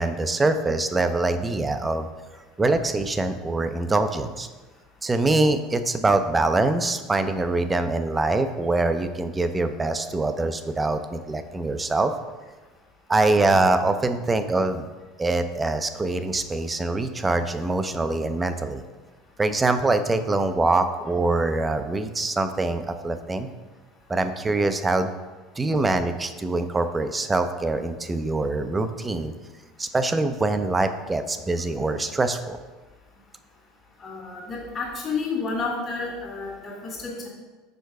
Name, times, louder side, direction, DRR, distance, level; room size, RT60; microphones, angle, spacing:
voice 1, 0.0-2.1 2.6-4.5 5.0-12.1 13.1-14.9 15.2-18.8 19.4-23.5 24.1-25.1 25.6-29.3 29.8-32.6, right 2 dB, 20° right, 9 dB, 0.5 m, -24 dB
voice 2, 34.0-37.3, left 4 dB, 35° left, -5 dB, 1.8 m, -30 dB
4.6 x 4.5 x 4.7 m, 1.3 s
hypercardioid pair, 90°, 0 cm